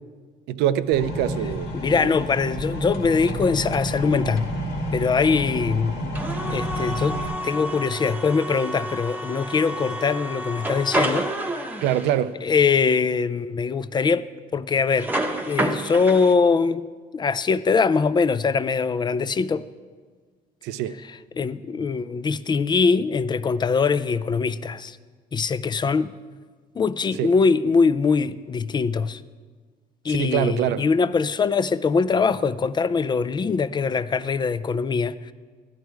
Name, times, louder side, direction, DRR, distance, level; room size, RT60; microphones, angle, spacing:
voice 1, 0.5-2.1 11.8-12.4 20.6-21.0 27.2-27.3 30.1-30.8, right 10 dB, 90° right, 13 dB, 0.5 m, -24 dB
sound 1, 0.9-7.3, equal, 80° left, 2.1 m, -30 dB
voice 2, 1.7-4.5 4.9-6.2 6.5-11.3 12.4-14.3 14.5-15.1 15.5-16.9 17.1-19.6 21.4-25.0 25.3-26.1 26.8-29.2 30.0-35.3, left 5 dB, 25° left, 15 dB, 0.4 m, -22 dB
sound 2, 6.1-12.2 14.9-16.3, right 1 dB, 10° right, 0.9 m, -29 dB
13.0 x 10.5 x 4.6 m, 1.5 s
cardioid pair, 110°, 17 cm